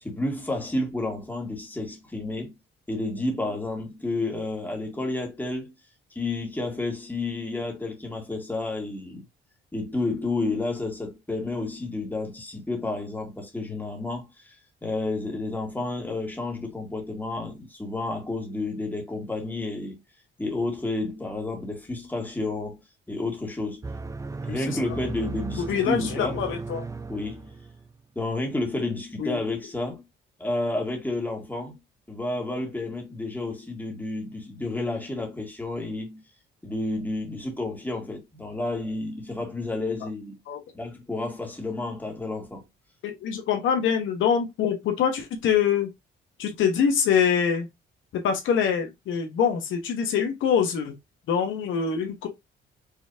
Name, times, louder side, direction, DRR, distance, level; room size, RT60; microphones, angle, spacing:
voice 1, 0.0-2.5 2.9-5.7 6.1-9.2 9.7-14.6 14.8-20.0 20.4-22.8 23.1-23.8 24.4-26.4 27.1-27.6 28.2-30.0 30.4-31.8 32.1-36.2 36.6-40.4 40.7-42.7, left 2 dB, 10° left, 2.0 m, -31 dB
sound 1, 23.8-27.9, right 3 dB, 15° right, 0.4 m, -36 dB
voice 2, 25.6-26.9 29.2-29.4 40.5-40.6 43.0-45.9 46.4-47.7 48.1-50.9 51.3-52.3, left 7 dB, 80° left, 1.2 m, -24 dB
5.5 x 3.2 x 2.8 m
cardioid pair, 90°, 20 cm